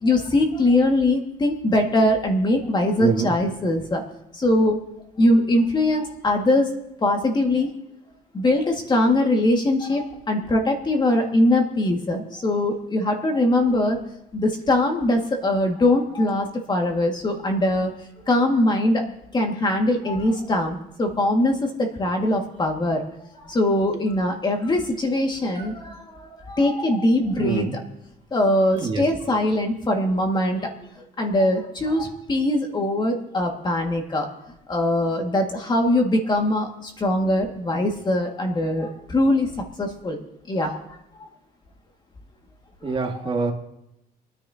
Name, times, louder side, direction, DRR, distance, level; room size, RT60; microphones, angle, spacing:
voice 1, 0.0-4.0 4.3-4.8 5.2-6.7 7.0-7.7 8.3-14.0 14.3-17.9 18.3-19.0 19.3-23.0 23.3-27.7 28.3-30.9 31.2-34.3 34.7-39.5 39.8-41.0 42.8-42.9, left 1 dB, 25° left, 2 dB, 2.0 m, -22 dB
voice 2, 3.0-3.3 27.4-27.8 28.8-29.0 42.8-43.5, right 4 dB, 35° right, 1 dB, 2.0 m, -25 dB
28.5 x 10.0 x 2.9 m, 0.84 s
cardioid pair, 115°, 16 cm